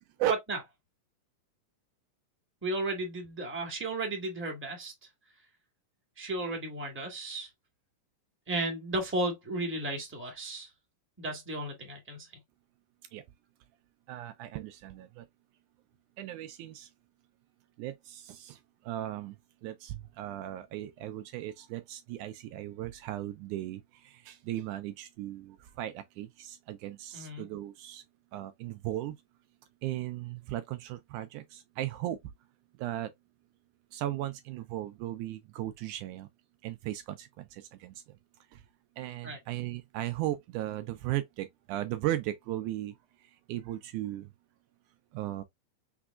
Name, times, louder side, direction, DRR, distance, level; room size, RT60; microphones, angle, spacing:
voice 1, 0.2-0.6 2.6-4.9 6.2-7.5 8.5-10.7 11.2-12.3 27.1-27.4 39.2-39.4, right 2 dB, 5° right, 1.4 m, -34 dB
voice 2, 14.1-15.3 16.2-16.9 17.8-18.6 18.8-28.0 28.3-29.2 29.8-32.2 32.8-33.1 33.9-36.3 36.6-38.0 38.5-38.6 39.0-43.0 43.2-44.3 45.1-45.4, right 14 dB, 80° right, 1.9 m, -36 dB
6.0 x 3.4 x 2.2 m
omnidirectional pair, 3.8 m